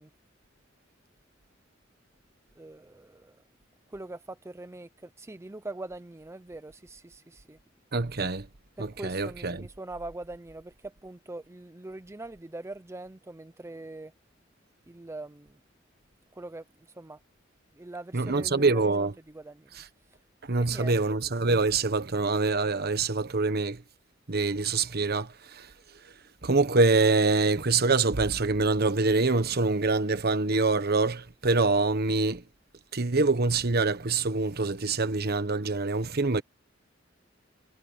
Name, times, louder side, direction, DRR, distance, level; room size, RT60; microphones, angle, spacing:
voice 1, 5.7-6.0 6.3-6.6 9.0-9.1 9.9-10.2 11.3-11.4 11.8-13.1 13.6-14.1 15.1-15.3 16.5-16.6 17.9-18.0 18.4-18.5 20.8-20.9, right 2 dB, 15° right, 0.5 m, -39 dB
voice 2, 7.9-8.5 8.8-9.7 18.1-19.2 19.7-19.9 20.5-23.8 24.3-25.7 26.4-32.4 32.9-36.4, right 3 dB, 55° right, 1.2 m, -25 dB
head